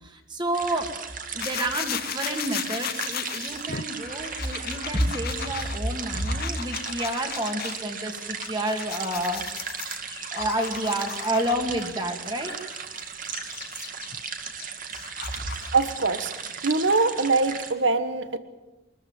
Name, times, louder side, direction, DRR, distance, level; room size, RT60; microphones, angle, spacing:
voice 1, 0.0-0.9 1.3-9.4 9.8-9.9 10.3-12.5, right 1 dB, 25° right, 4 dB, 2.4 m, -29 dB
sound 1, 0.5-17.7, right 6 dB, 45° right, 2.2 m, -36 dB
sound 2, 1.4-7.8 8.2-11.8 12.4-15.8, left 9 dB, 50° left, 0.7 m, -36 dB
voice 2, 15.7-16.3 16.6-18.4, right 3 dB, 70° right, 11 dB, 1.3 m, -23 dB
23.5 x 14.0 x 9.0 m, 1.0 s
head